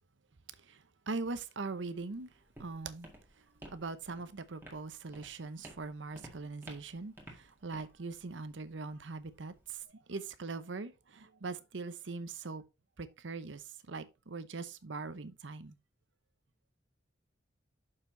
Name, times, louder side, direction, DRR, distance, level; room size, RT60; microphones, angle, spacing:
voice 1, 1.1-2.3 2.6-3.1 3.7-7.1 7.6-9.5 10.1-12.6 13.0-13.6 13.9-15.7, right 3 dB, 85° right, 0.8 m, -41 dB
Walk footsteps, 1.9-9.8, right 1 dB, 10° right, 1.9 m, -55 dB
6.7 x 5.7 x 3.8 m
head